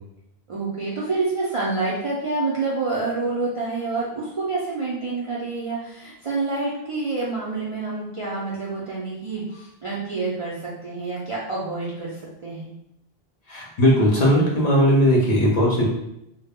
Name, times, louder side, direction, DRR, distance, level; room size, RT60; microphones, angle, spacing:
voice 1, 0.5-10.5 10.8-12.7, right 3 dB, 50° right, -6 dB, 0.4 m, -27 dB
voice 2, 13.5-15.9, equal, 50° left, -4 dB, 0.5 m, -18 dB
2.1 x 2.0 x 3.4 m, 0.82 s
omnidirectional pair, 1.0 m